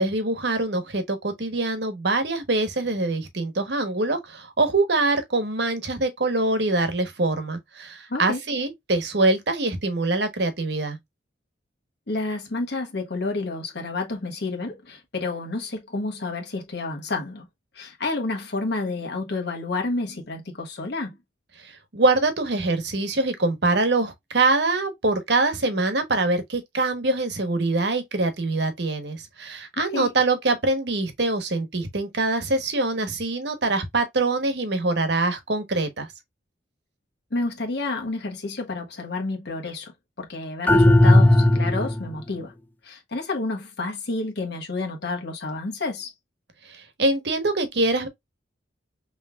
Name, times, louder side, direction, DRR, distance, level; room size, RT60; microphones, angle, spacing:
voice 1, 0.0-11.0 21.6-36.1 46.7-48.1, right 2 dB, 60° right, 1.1 m, -24 dB
voice 2, 8.1-8.4 12.1-17.5 17.7-21.2 29.8-30.1 37.3-39.9 40.2-42.5 42.8-46.1, left 3 dB, 60° left, 1.4 m, -30 dB
sound 1, 40.7-42.1, left 1 dB, 10° left, 0.4 m, -15 dB
5.6 x 3.2 x 2.3 m
head